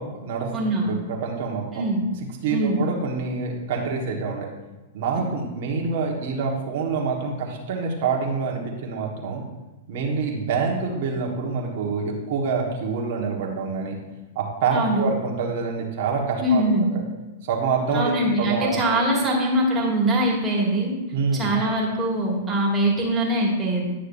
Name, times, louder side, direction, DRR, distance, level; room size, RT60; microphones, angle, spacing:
voice 1, 0.0-1.8 2.4-4.5 4.9-9.4 9.9-13.9 14.3-16.6 17.5-18.1 18.4-19.0 21.1-21.5, right 5 dB, 60° right, -1 dB, 1.5 m, -26 dB
voice 2, 0.5-0.9 1.7-2.0 2.5-2.8 14.7-15.0 16.4-16.9 17.9-20.9 21.4-23.8, right 1 dB, 15° right, -3 dB, 2.2 m, -22 dB
10.0 x 6.4 x 2.7 m, 1.1 s
hypercardioid pair, 125°, 0 cm